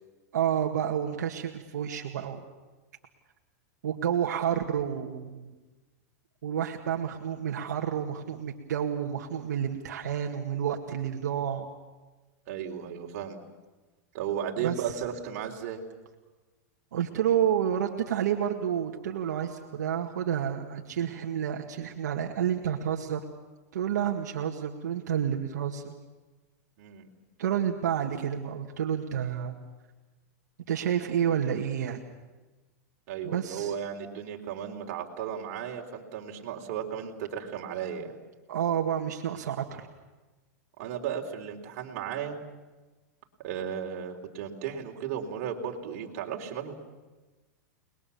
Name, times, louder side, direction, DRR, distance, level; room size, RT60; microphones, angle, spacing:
voice 1, 0.3-2.4 3.8-5.5 6.4-11.7 14.6-14.9 16.9-23.2 23.7-25.9 27.4-29.5 30.7-32.0 33.2-33.7 38.5-39.9, right 9 dB, 85° right, 2 dB, 2.0 m, -29 dB
voice 2, 12.5-13.4 14.1-15.8 26.8-27.1 33.1-38.2 40.8-42.4 43.4-46.7, right 8 dB, 50° right, 2 dB, 3.8 m, -35 dB
30.0 x 21.0 x 7.1 m, 1.2 s
supercardioid pair, 145°, 9 cm